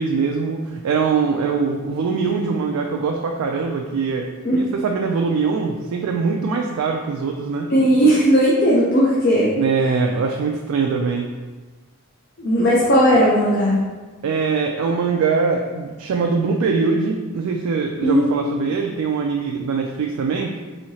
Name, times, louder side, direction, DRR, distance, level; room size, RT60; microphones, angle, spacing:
voice 1, 0.0-4.2 4.5-7.7 9.6-11.3 14.2-20.6, right 5 dB, 85° right, 1 dB, 0.3 m, -22 dB
voice 2, 7.7-9.6 12.4-13.8 18.0-18.4, equal, 50° left, -6 dB, 0.6 m, -16 dB
4.3 x 2.7 x 2.8 m, 1.3 s
head